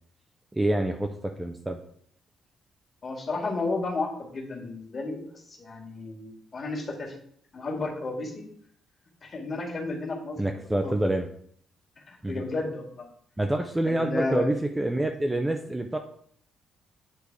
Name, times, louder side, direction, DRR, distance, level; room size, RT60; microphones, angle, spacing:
voice 1, 0.5-1.8 10.4-11.3 12.2-12.4 13.4-16.0, right 1 dB, 10° right, 4 dB, 0.5 m, -27 dB
voice 2, 3.0-7.1 7.5-8.4 9.2-10.9 12.1-13.1 13.8-14.5, left 3 dB, 30° left, -1 dB, 2.0 m, -33 dB
9.0 x 3.4 x 4.7 m, 0.63 s
cardioid pair, 140°, 0 cm